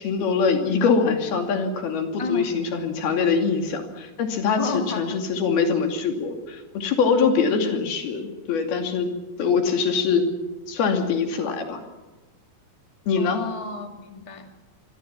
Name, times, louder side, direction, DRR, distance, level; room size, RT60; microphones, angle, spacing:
voice 1, 0.0-10.3 10.7-11.8 13.1-13.4, left 5 dB, 75° left, 4 dB, 4.5 m, -23 dB
voice 2, 2.2-2.5 4.6-5.2 7.2-7.5 13.1-14.4, left 3 dB, 15° left, 4 dB, 1.3 m, -31 dB
25.5 x 23.0 x 6.0 m, 1.2 s
omnidirectional pair, 4.5 m